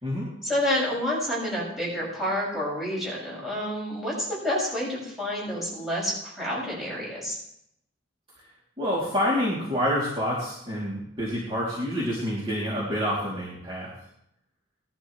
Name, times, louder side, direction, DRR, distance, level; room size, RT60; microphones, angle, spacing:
voice 1, 0.4-7.4, left 1 dB, ahead, -6 dB, 6.4 m, -29 dB
voice 2, 8.8-13.9, equal, 25° right, -7 dB, 3.0 m, -27 dB
19.0 x 11.5 x 3.2 m, 0.75 s
head